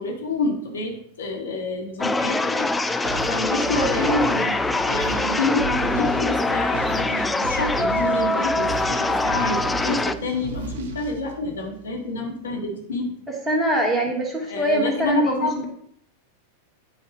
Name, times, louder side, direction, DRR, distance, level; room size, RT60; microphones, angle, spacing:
voice 1, 0.0-2.7 3.3-4.6 4.9-13.1 14.5-15.7, left 2 dB, 65° left, 1 dB, 1.9 m, -28 dB
sound 1, 2.0-10.1, left 2 dB, 10° left, 0.4 m, -23 dB
sound 2, 3.0-11.9, right 4 dB, 50° right, 1.7 m, -34 dB
voice 2, 3.6-4.4 13.5-15.5, right 1 dB, 10° right, 0 dB, 2.3 m, -24 dB
9.4 x 5.1 x 5.0 m, 0.67 s
figure-of-eight pair, 90°, 0 cm